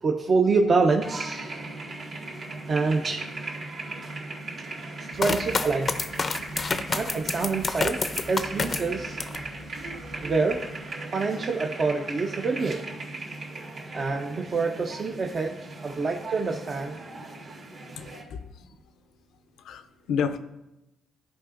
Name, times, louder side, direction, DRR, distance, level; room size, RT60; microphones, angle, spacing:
voice 1, 0.0-1.6 2.7-3.3 5.1-5.9 6.2-6.3 6.9-8.0 8.3-9.2 10.2-10.7 11.1-12.8 13.9-17.0, right 4 dB, 40° right, 1 dB, 0.7 m, -26 dB
sound 1, 1.0-18.2, right 2 dB, 60° right, 2.3 m, -38 dB
sound 2, 5.2-9.5 9.9-10.6, left 4 dB, 35° left, 0.5 m, -29 dB
voice 2, 18.0-18.7 19.6-20.4, left 7 dB, 80° left, 8 dB, 0.5 m, -31 dB
14.0 x 4.9 x 2.5 m, 0.94 s
cardioid pair, 90°, 0 cm